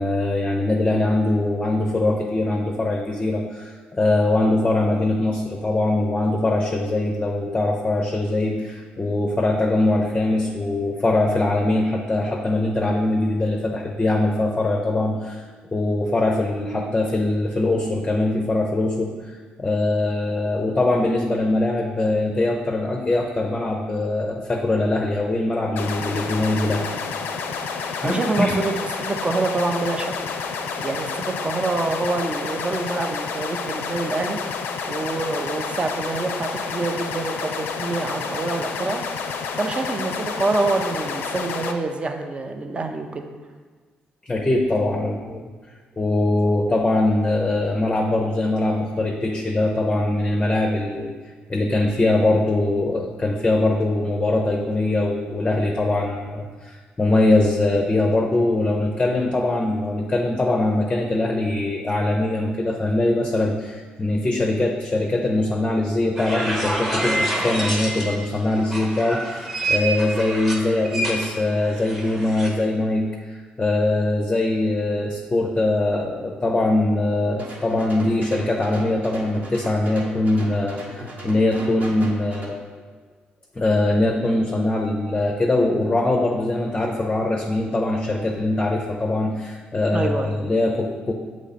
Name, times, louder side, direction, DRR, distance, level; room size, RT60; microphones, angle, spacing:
voice 1, 0.0-15.4 15.7-19.1 19.6-26.9 28.0-28.6 44.3-45.4 46.0-82.6 83.6-91.1, left 2 dB, 20° left, 1 dB, 0.6 m, -22 dB
sound 1, 25.8-41.7, left 5 dB, 80° left, 0.5 m, -29 dB
voice 2, 28.0-28.7 29.0-30.1 30.8-34.4 34.9-39.0 39.6-43.2 89.9-90.4, right 3 dB, 30° right, 5 dB, 0.6 m, -26 dB
sound 2, 66.2-68.3 68.6-72.5, right 1 dB, 5° right, 1.1 m, -27 dB
sound 3, 77.3-82.5, equal, 50° right, 1.2 m, -37 dB
7.3 x 3.1 x 4.2 m, 1.5 s
cardioid pair, 85°, 4 cm